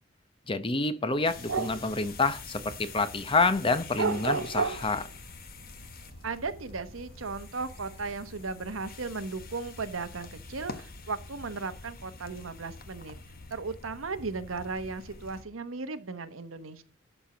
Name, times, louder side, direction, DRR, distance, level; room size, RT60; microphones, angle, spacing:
voice 1, 0.5-5.1, left 3 dB, 25° left, 0.7 m, -28 dB
sound 1, 1.1-2.9 3.3-5.3 5.7-7.3 7.7-8.5, right 5 dB, 70° right, 0.6 m, -32 dB
sound 2, 1.2-15.4, left 3 dB, 50° left, 1.2 m, -46 dB
voice 2, 6.2-13.2 13.5-16.8, right 4 dB, 90° right, 1.1 m, -36 dB
12.0 x 4.5 x 6.1 m
head